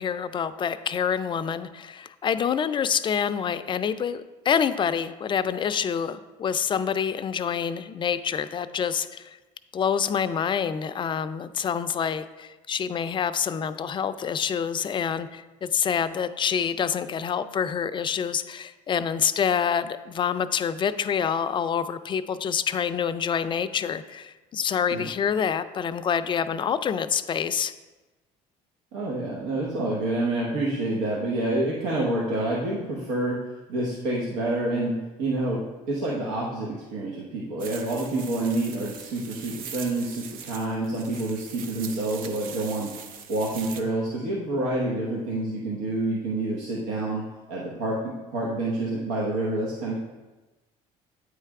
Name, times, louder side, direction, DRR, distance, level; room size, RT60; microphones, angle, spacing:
voice 1, 0.0-9.4 9.7-27.7, left 7 dB, 35° left, 12 dB, 0.4 m, -27 dB
voice 2, 28.9-33.4 33.7-42.9 43.3-49.9, right 2 dB, 90° right, -4 dB, 1.0 m, -28 dB
sound 1, 37.6-43.8, right 7 dB, 70° right, 0.6 m, -41 dB
8.5 x 3.3 x 4.7 m, 1.1 s
supercardioid pair, 95°, 15 cm